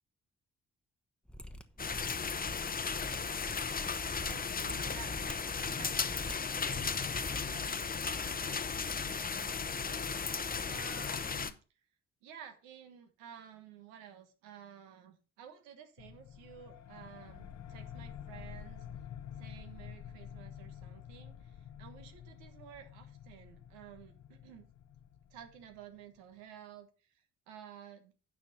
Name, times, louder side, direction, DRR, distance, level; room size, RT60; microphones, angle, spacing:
Mechanisms, 1.3-7.4 7.6-7.7, equal, 5° left, 1.1 m, -47 dB
sound 1, 1.8-11.5, left 5 dB, 30° left, 0.9 m, -35 dB
voice 1, 4.3-5.4 5.7-6.1 6.4-10.1 10.7-11.6 12.2-18.9 19.4-24.7 25.3-28.1, right 9 dB, 75° right, 7 dB, 1.4 m, -53 dB
sound 2, 16.0-26.2, left 9 dB, 60° left, 0.9 m, -49 dB
9.4 x 5.9 x 5.4 m, 0.34 s
figure-of-eight pair, 40°, 31 cm